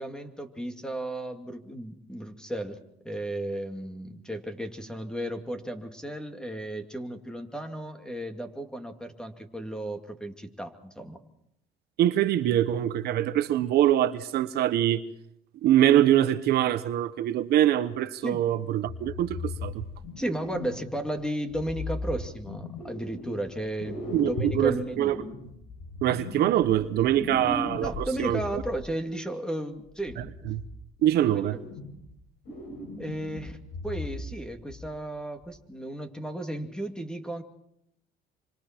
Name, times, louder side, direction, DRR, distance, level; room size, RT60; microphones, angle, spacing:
voice 1, 0.0-2.8 3.0-11.2 18.2-18.4 20.2-25.2 27.8-30.3 31.2-31.6 33.0-33.6 33.8-37.4, right 1 dB, 5° left, 2.5 m, -34 dB
voice 2, 12.0-15.0 15.6-19.8 24.1-25.2 26.0-28.6 30.2-30.6 31.0-31.6, right 12 dB, 70° right, 1.0 m, -24 dB
sound 1, 18.9-21.1 21.5-23.5 23.8-28.8 29.8-30.7 31.1-32.1 32.4-34.4 34.7-34.9 35.4-35.5, left 2 dB, 85° left, 7.5 m, -38 dB
27.0 x 25.5 x 4.5 m
cardioid pair, 110°, 17 cm